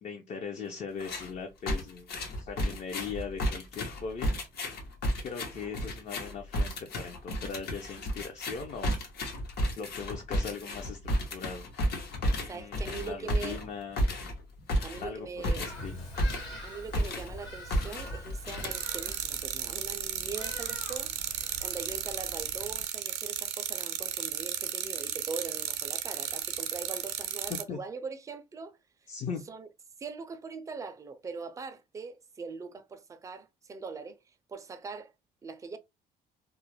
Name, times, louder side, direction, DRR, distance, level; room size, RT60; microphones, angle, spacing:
voice 1, 0.0-4.4 5.2-9.0 9.8-11.0 11.3-11.7 12.5-14.0 15.0-16.1 27.7-27.8 29.1-29.4, left 5 dB, 45° left, 0.5 m, -39 dB
sound 1, 1.0-1.3 1.7-16.6 16.9-17.4 17.7-19.1, equal, 70° left, 0.9 m, -32 dB
voice 2, 12.5-13.6 14.8-15.6 16.6-21.1 21.6-28.8 29.5-29.7 30.0-34.2 34.5-35.1 35.4-35.8, right 4 dB, 20° right, 0.3 m, -41 dB
Bird vocalization bird call bird song, 15.6-22.8, equal, 90° left, 1.3 m, -45 dB
sound 2, 18.6-27.6, right 10 dB, 80° right, 0.5 m, -35 dB
2.3 x 2.0 x 2.9 m
cardioid pair, 110°, 17 cm